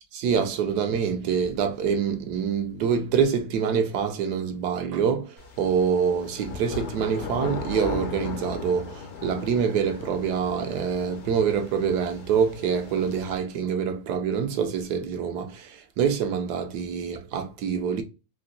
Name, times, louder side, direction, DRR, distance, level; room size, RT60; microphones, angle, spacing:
voice 1, 0.1-18.0, right 7 dB, 70° right, 1.3 m, -26 dB
sound 1, 5.4-13.4, left 5 dB, 55° left, 0.9 m, -37 dB
4.9 x 2.1 x 2.4 m
omnidirectional pair, 1.8 m